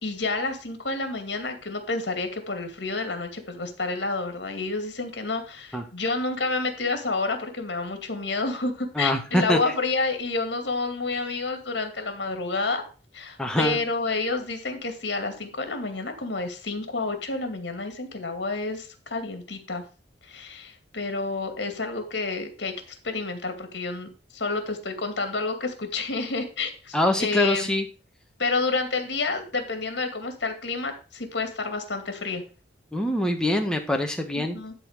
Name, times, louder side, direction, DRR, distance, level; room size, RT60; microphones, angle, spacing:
voice 1, 0.0-12.8 13.1-19.8 20.2-27.7 28.4-32.4 34.4-34.7, left 3 dB, 70° left, 6 dB, 2.3 m, -29 dB
voice 2, 8.9-9.6 13.4-13.8 26.9-27.8 32.9-34.6, left 1 dB, 5° left, 3 dB, 1.5 m, -24 dB
12.0 x 4.2 x 6.6 m, 0.35 s
head